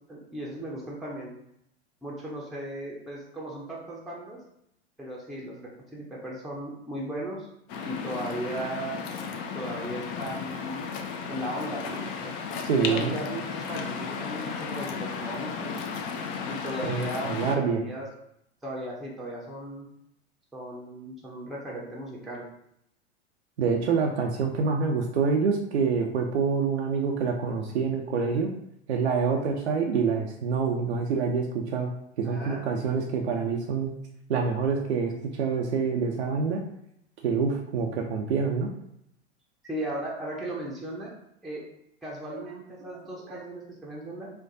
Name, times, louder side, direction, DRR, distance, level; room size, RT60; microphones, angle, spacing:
voice 1, 0.1-1.3 2.0-4.4 5.0-7.5 7.8-9.0 9.5-10.8 11.3-15.7 16.5-18.1 18.6-19.9 20.5-22.5 32.2-32.6 39.6-41.1 41.4-41.6 42.0-44.3, right 1 dB, ahead, -5 dB, 0.6 m, -36 dB
Waves surf, 7.7-17.6, left 5 dB, 45° left, 0.6 m, -34 dB
voice 2, 12.6-13.1 16.9-17.8 23.6-28.5 28.9-31.9 32.2-33.9 34.3-36.6 37.2-38.7 42.3-42.4 42.8-42.9 43.3-43.4, right 5 dB, 75° right, 1 dB, 0.5 m, -26 dB
4.3 x 2.2 x 2.6 m, 0.77 s
figure-of-eight pair, 90°, 34 cm